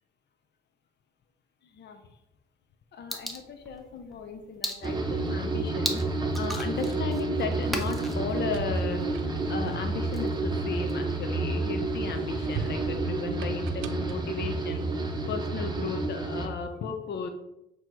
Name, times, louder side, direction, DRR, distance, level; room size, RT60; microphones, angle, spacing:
voice 1, 1.6-2.0 2.9-14.8 15.3-17.3, left 5 dB, 60° left, 5 dB, 0.7 m, -35 dB
sound 1, 3.1-11.1, equal, ahead, 1.0 m, -39 dB
sound 2, 4.8-16.5, right 3 dB, 20° right, 0.9 m, -30 dB
sound 3, 8.3-11.4 11.9-15.3, right 7 dB, 80° right, 0.6 m, -42 dB
7.9 x 3.0 x 4.6 m, 0.87 s
cardioid pair, 90°, 20 cm